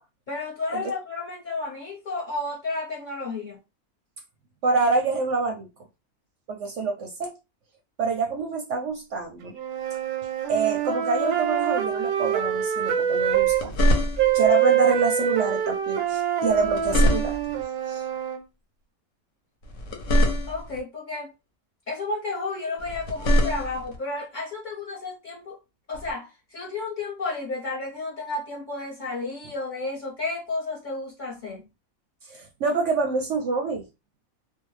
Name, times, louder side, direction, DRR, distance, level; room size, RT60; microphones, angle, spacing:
voice 1, 0.3-3.6 20.5-21.3 21.9-25.6 25.9-31.7, left 3 dB, 40° left, 0.9 m, -32 dB
voice 2, 4.6-5.7 6.5-7.3 8.0-9.6 10.5-13.7 14.3-17.4 17.9-18.0 32.2-33.8, right 4 dB, 65° right, 0.8 m, -26 dB
sound 1, 9.5-13.6 14.2-18.4, right 10 dB, 90° right, 1.1 m, -25 dB
sound 2, 13.3-14.5 16.5-17.6 19.6-20.8 22.8-24.0 25.9-26.1, equal, 60° left, 1.0 m, -24 dB
2.5 x 2.2 x 3.1 m
omnidirectional pair, 1.5 m